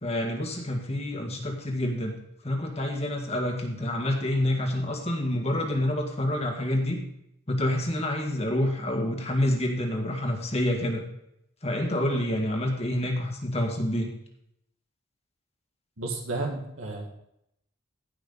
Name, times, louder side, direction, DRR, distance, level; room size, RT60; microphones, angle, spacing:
voice 1, 0.0-2.2 2.4-7.0 7.5-11.0 11.6-14.1, left 1 dB, 30° left, 1 dB, 1.8 m, -27 dB
voice 2, 16.0-17.1, right 2 dB, 75° right, 1 dB, 1.7 m, -32 dB
15.5 x 5.8 x 4.0 m, 0.78 s
head